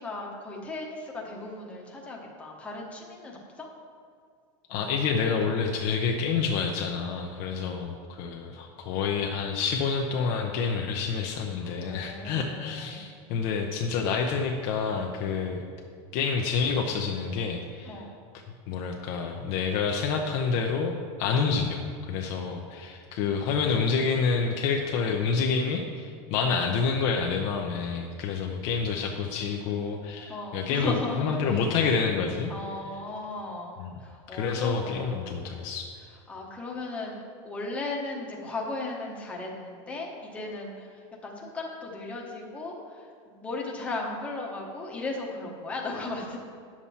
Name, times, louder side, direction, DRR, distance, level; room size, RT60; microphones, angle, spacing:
voice 1, 0.0-3.7 11.6-13.0 17.8-18.1 30.3-31.6 32.5-35.1 36.3-37.2 37.4-46.4, left 2 dB, 10° left, -2 dB, 1.0 m, -36 dB
voice 2, 4.7-15.6 16.1-18.0 18.7-32.5 33.8-33.9 34.3-35.9, left 5 dB, 40° left, 2 dB, 0.6 m, -28 dB
9.8 x 7.3 x 4.2 m, 2.2 s
supercardioid pair, 175°, 16 cm